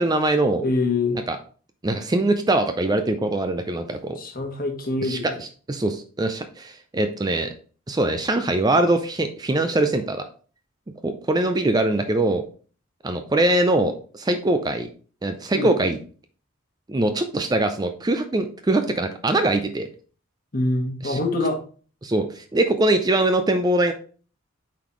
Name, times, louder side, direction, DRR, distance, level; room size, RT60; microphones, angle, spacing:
voice 1, 0.0-0.6 1.3-1.4 1.8-4.2 5.0-7.5 7.9-10.3 11.0-12.4 13.0-14.9 15.2-16.0 16.9-19.9 21.0-21.2 22.0-23.9, right 2 dB, 20° right, 7 dB, 0.4 m, -22 dB
voice 2, 0.6-1.2 4.2-5.4 15.5-15.7 20.5-21.6, left 2 dB, 45° left, 2 dB, 1.3 m, -25 dB
8.4 x 4.0 x 3.0 m, 0.41 s
head